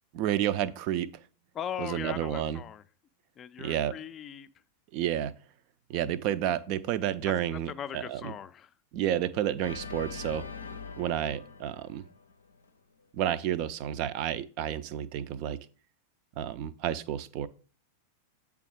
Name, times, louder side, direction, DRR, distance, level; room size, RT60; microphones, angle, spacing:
voice 1, 0.1-1.1 1.8-2.6 3.6-3.9 4.9-5.3 5.9-8.3 8.9-10.5 11.0-12.0 13.1-15.6 16.4-17.5, right 11 dB, 45° right, 16 dB, 0.4 m, -30 dB
voice 2, 1.5-2.8 3.4-4.5 7.7-8.7, left 9 dB, 25° left, 13 dB, 0.4 m, -39 dB
Organ, 9.6-12.7, left 5 dB, 75° left, 0.5 m, -43 dB
8.3 x 3.4 x 4.9 m, 0.40 s
figure-of-eight pair, 90°, 0 cm